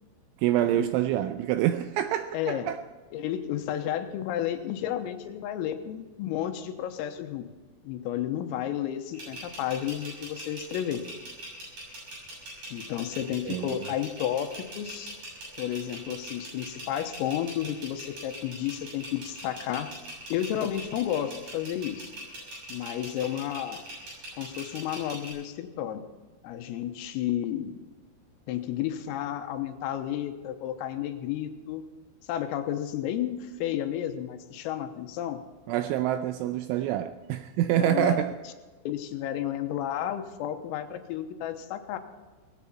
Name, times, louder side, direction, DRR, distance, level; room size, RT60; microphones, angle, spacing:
voice 1, 0.4-2.8 13.5-13.7 35.7-38.3, right 12 dB, 85° right, 2.7 m, -26 dB
voice 2, 2.3-2.7 3.1-7.5 7.8-11.1 12.7-15.2 15.6-19.9 20.3-22.1 22.7-23.8 24.4-26.0 26.4-27.8 28.5-31.8 32.3-35.4 37.8-38.2 38.9-42.0, left 11 dB, 90° left, 3.7 m, -32 dB
sound 1, 9.1-25.3, right 1 dB, 40° right, 7.7 m, -42 dB
18.5 x 16.0 x 4.3 m
omnidirectional pair, 6.0 m